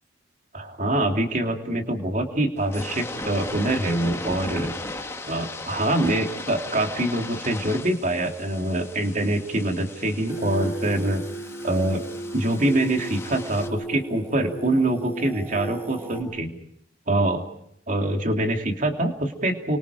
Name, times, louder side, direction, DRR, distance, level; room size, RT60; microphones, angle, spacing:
voice 1, 0.5-4.7 5.3-11.2 11.6-12.0 12.3-16.6 17.1-17.4 17.9-19.8, right 1 dB, 40° right, 3 dB, 2.8 m, -24 dB
sound 1, 2.6-13.7, left 2 dB, 15° left, 1.9 m, -37 dB
Singing, 10.3-16.2, right 2 dB, 10° right, 5.4 m, -35 dB
30.0 x 24.5 x 4.9 m, 0.73 s
head